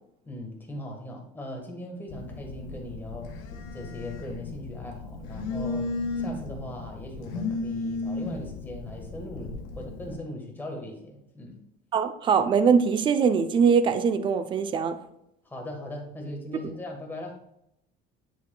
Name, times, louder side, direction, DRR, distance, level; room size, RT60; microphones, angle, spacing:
voice 1, 0.2-3.5 3.7-5.9 6.1-11.6 15.4-17.3, left 1 dB, 10° left, 0 dB, 1.4 m, -39 dB
Telephone, 2.1-10.2, left 3 dB, 90° left, 1.4 m, -35 dB
voice 2, 11.9-15.0, right 6 dB, 25° right, 9 dB, 0.4 m, -22 dB
10.5 x 4.7 x 2.3 m, 0.80 s
cardioid pair, 155°, 19 cm